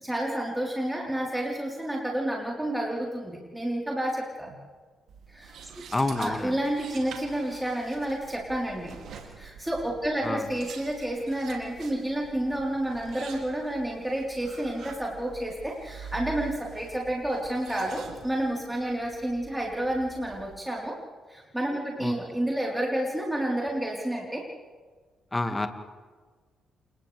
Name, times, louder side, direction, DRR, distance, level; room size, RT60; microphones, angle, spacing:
voice 1, 0.0-4.5 5.3-5.5 6.2-9.0 9.4-21.0 21.3-24.4, right 1 dB, 10° right, -3 dB, 4.1 m, -30 dB
sound 1, 5.1-20.6, right 6 dB, 60° right, 2.8 m, -46 dB
voice 2, 5.9-6.6 10.2-10.5 22.0-22.1 25.3-25.7, left 2 dB, 20° left, 7 dB, 2.0 m, -28 dB
29.5 x 28.0 x 3.5 m, 1.4 s
hypercardioid pair, 40°, 0 cm